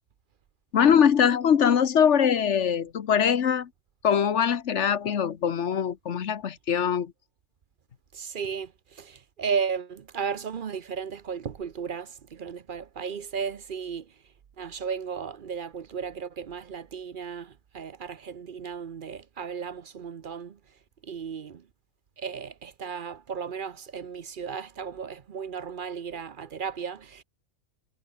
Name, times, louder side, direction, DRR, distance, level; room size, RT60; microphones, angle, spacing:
voice 1, 0.7-3.7 4.0-7.1, left 8 dB, 60° left, 1.3 m, -22 dB
voice 2, 8.1-14.1 14.6-20.6 21.0-21.7 22.2-27.2, right 6 dB, 45° right, 0.8 m, -35 dB
omnidirectional pair, 1.4 m